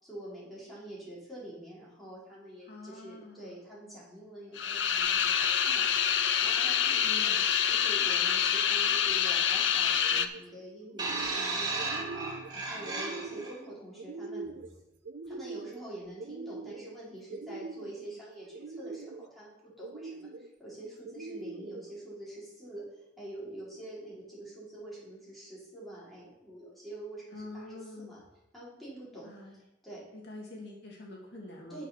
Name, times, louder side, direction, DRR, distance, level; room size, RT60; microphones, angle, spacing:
voice 1, 0.0-7.4 7.6-14.6 15.3-28.2 28.5-30.1 31.7-31.9, right 1 dB, ahead, -8 dB, 4.0 m, -46 dB
voice 2, 2.7-3.5 7.0-7.5 27.3-28.2 29.2-29.6 30.1-31.8, left 2 dB, 65° left, -1 dB, 2.1 m, -46 dB
sound 1, 4.5-10.3, left 8 dB, 80° left, 0.7 m, -26 dB
sound 2, 10.0-10.4 10.8-11.5 11.8-12.5 12.8-13.6 14.0-14.7 15.0-15.8 16.2-16.9 17.3-18.0 18.5-19.3 19.8-20.5 21.0-21.8, right 3 dB, 80° right, 0.7 m, -43 dB
sound 3, 11.0-13.5 14.5-14.6, right 3 dB, 25° right, 2.5 m, -34 dB
9.9 x 6.4 x 5.7 m, 0.89 s
head